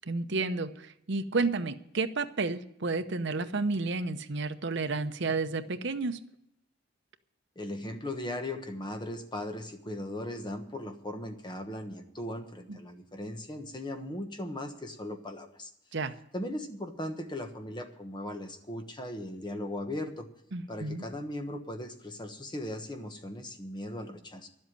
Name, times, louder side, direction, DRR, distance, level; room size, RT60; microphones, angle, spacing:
voice 1, 0.1-6.2 12.7-12.8 15.9-16.1 20.5-21.0, right 3 dB, 60° right, 9 dB, 0.8 m, -31 dB
voice 2, 7.5-15.7 16.3-20.3 20.7-24.5, left 1 dB, 25° left, 6 dB, 1.2 m, -38 dB
11.5 x 7.9 x 10.0 m, 0.79 s
head